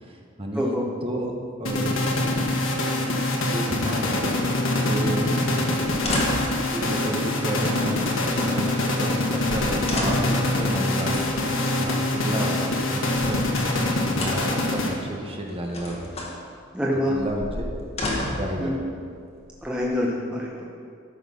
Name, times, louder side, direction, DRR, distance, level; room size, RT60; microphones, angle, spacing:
voice 1, 0.0-0.8 1.0-2.0 3.4-4.3 4.9-5.4 6.6-11.2 11.7-13.4 14.0-16.0 17.1-17.7 18.3-18.7, right 1 dB, 30° right, 1 dB, 1.2 m, -31 dB
voice 2, 0.5-0.9 5.2-5.3 16.7-17.2 18.6-18.8 19.6-20.6, left 1 dB, 5° right, -4 dB, 0.8 m, -26 dB
sound 1, 1.7-15.3, left 1 dB, 85° left, 1.5 m, -24 dB
sound 2, 5.8-6.6 7.6-8.5 9.2-9.3 9.5-10.4 11.1-11.8 12.9-13.9 14.2-14.6 15.5-16.4 17.2-18.5 19.3-20.0, left 1 dB, 30° left, 1.5 m, -32 dB
13.5 x 5.8 x 5.5 m, 2.3 s
head